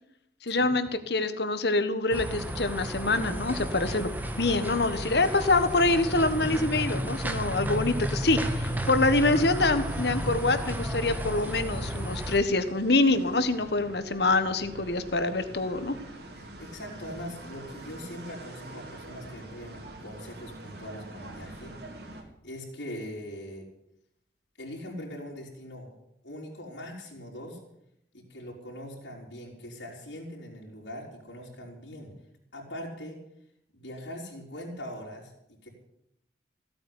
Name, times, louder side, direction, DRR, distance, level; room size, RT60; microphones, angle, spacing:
voice 1, 0.4-4.1 4.4-16.0, left 2 dB, 70° left, 11 dB, 1.5 m, -25 dB
sound 1, 2.1-12.4, right 1 dB, 10° right, 1.4 m, -32 dB
sound 2, 5.2-22.2, right 2 dB, 65° right, 3.0 m, -46 dB
voice 2, 16.3-21.7 22.4-23.7 24.6-25.9 26.2-27.6 28.1-32.1 32.5-33.2 33.7-35.7, equal, 85° left, -4 dB, 4.6 m, -41 dB
16.5 x 8.7 x 9.8 m, 0.78 s
head